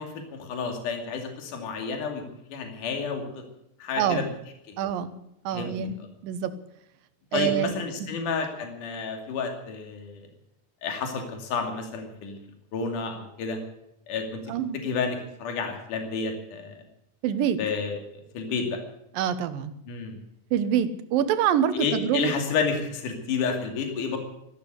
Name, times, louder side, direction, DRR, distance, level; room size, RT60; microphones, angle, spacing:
voice 1, 0.0-2.2 2.5-3.4 3.8-4.2 4.7-4.8 5.5-5.7 6.0-6.1 7.3-10.2 10.8-12.4 12.7-13.6 14.1-14.4 14.7-16.7 17.6-18.1 18.3-18.8 19.9-20.2 21.7-24.2, left 5 dB, 60° left, 4 dB, 3.9 m, -30 dB
voice 2, 4.8-5.1 5.5-6.0 6.2-6.5 7.3-7.7 8.0-8.1 14.5-14.8 17.2-17.6 19.2-19.7 20.5-22.3, right 9 dB, 70° right, 12 dB, 2.6 m, -25 dB
14.5 x 12.5 x 8.2 m, 0.81 s
omnidirectional pair, 4.4 m